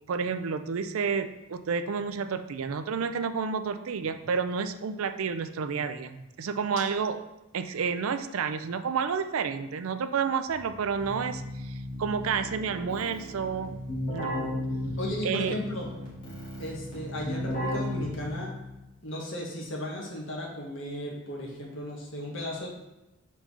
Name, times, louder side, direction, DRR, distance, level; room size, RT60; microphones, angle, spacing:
voice 1, 0.1-7.2 7.5-13.7 14.1-14.4 15.2-15.6, right 6 dB, 70° right, 10 dB, 0.4 m, -30 dB
Keyboard (musical), 10.5-18.8, left 1 dB, 40° left, 1.9 m, -35 dB
voice 2, 14.2-15.9 16.6-18.5 19.0-22.7, left 1 dB, 60° left, -2 dB, 1.5 m, -36 dB
4.6 x 4.4 x 5.4 m, 0.94 s
head